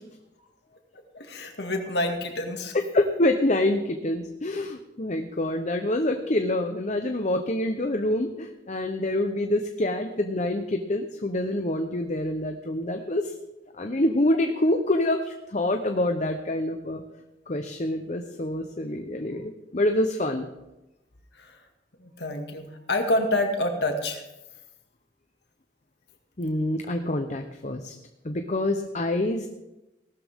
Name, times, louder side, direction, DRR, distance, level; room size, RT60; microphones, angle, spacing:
voice 1, 1.1-2.8 21.3-21.6 22.0-24.2, left 1 dB, 70° left, 3 dB, 2.1 m, -27 dB
voice 2, 2.9-13.3 13.7-17.0 17.5-20.5 26.4-27.9 28.2-29.5, left 1 dB, 40° left, 6 dB, 0.9 m, -26 dB
18.0 x 12.5 x 3.7 m, 0.96 s
head